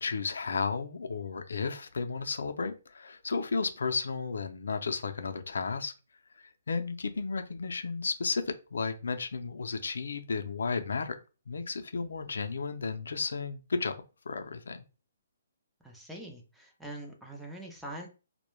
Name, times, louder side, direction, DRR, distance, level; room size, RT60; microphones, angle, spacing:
voice 1, 0.0-5.9 6.4-11.2 11.5-13.9 14.3-14.8, left 4 dB, 85° left, 7 dB, 0.4 m, -33 dB
voice 2, 15.8-18.1, right 1 dB, ahead, 0 dB, 0.4 m, -43 dB
2.2 x 2.1 x 3.0 m, 0.32 s
hypercardioid pair, 175°, 0 cm